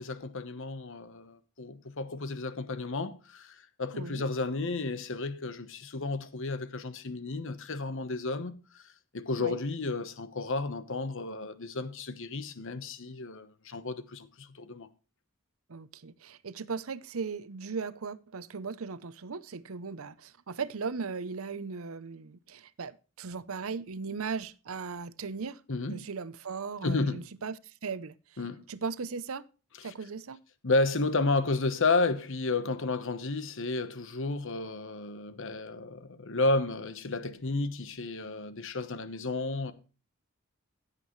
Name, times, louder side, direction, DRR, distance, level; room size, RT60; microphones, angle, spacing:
voice 1, 0.0-8.8 9.1-14.9 25.7-26.1 26.8-27.2 28.4-28.6 29.8-29.9 30.6-39.7, left 3 dB, 60° left, 1.1 m, -32 dB
voice 2, 3.9-4.3 9.4-9.6 15.7-25.6 25.9-28.1 28.7-29.5 29.8-30.4, right 5 dB, 70° right, 0.7 m, -37 dB
16.0 x 8.2 x 3.2 m
head